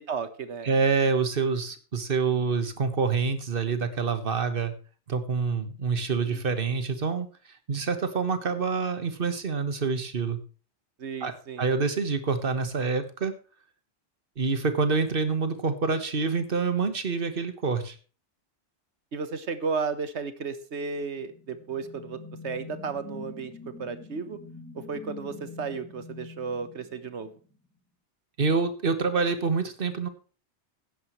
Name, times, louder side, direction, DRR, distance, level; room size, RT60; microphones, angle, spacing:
voice 1, 0.0-0.7 6.3-6.8 11.0-11.7 19.1-23.5 23.8-24.4 24.7-27.3, right 5 dB, 75° right, 12 dB, 1.5 m, -34 dB
voice 2, 0.6-4.7 5.1-7.3 7.7-10.4 11.2-11.3 11.6-13.3 14.4-18.0 28.4-30.1, right 5 dB, 50° right, 10 dB, 1.6 m, -26 dB
sound 1, 21.2-27.6, left 3 dB, 10° left, 3.3 m, -45 dB
15.5 x 10.5 x 3.2 m, 0.37 s
omnidirectional pair, 1.2 m